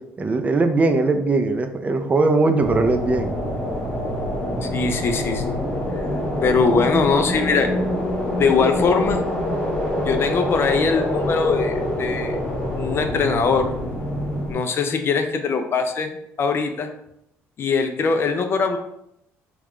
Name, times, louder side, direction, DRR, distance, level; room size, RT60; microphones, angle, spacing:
voice 1, 0.2-3.3, right 3 dB, 25° right, 7 dB, 0.4 m, -20 dB
sound 1, 2.6-14.5, left 1 dB, 20° left, 1.4 m, -25 dB
voice 2, 4.6-5.6 6.4-7.7 8.4-9.2 10.0-12.4 12.7-13.7 14.5-16.9 17.6-18.8, left 5 dB, 45° left, 6 dB, 0.4 m, -21 dB
3.5 x 2.3 x 3.1 m, 0.78 s
cardioid pair, 100°, 6 cm